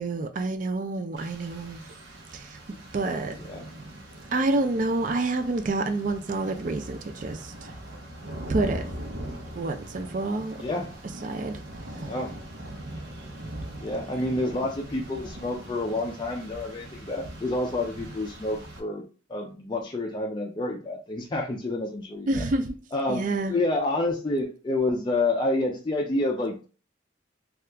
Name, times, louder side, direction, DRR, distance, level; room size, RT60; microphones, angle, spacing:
voice 1, 0.0-1.8 2.9-3.3 4.3-7.4 8.5-8.8 9.6-10.5 11.2-11.6 22.3-22.7 23.1-23.5, right 2 dB, 45° right, 0.4 m, -27 dB
Rain, 1.2-18.8, right 1 dB, 90° right, 0.7 m, -41 dB
voice 2, 10.5-10.9 12.0-12.3 13.8-19.0 19.3-22.4 22.9-26.7, left 2 dB, 25° left, 0.4 m, -29 dB
2.8 x 2.4 x 3.3 m
head